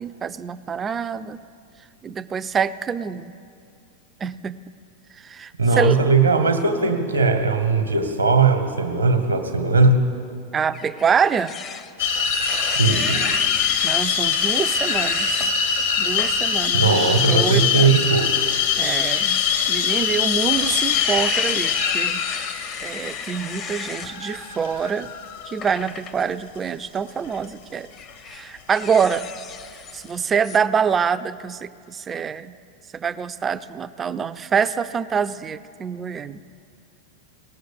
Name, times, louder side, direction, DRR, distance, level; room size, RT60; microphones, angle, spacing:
voice 1, 0.0-1.4 2.0-3.4 4.2-4.6 5.2-6.0 10.5-11.5 13.8-15.5 16.0-17.9 18.8-25.1 25.5-27.9 28.3-29.3 29.9-32.5 32.9-36.4, right 6 dB, 20° right, 14 dB, 0.3 m, -25 dB
voice 2, 5.6-10.0 12.8-13.2 16.7-18.3, right 4 dB, 80° right, 7 dB, 1.1 m, -19 dB
sound 1, 10.7-15.5 16.0-16.3 16.8-16.9 18.0-24.1 25.6-26.2 27.2-27.4 27.9-30.1 30.4-30.6, left 6 dB, 30° left, 0.6 m, -34 dB
sound 2, 12.0-25.6, left 7 dB, 60° left, 0.9 m, -23 dB
18.5 x 6.5 x 6.8 m, 2.3 s
figure-of-eight pair, 90°, 0 cm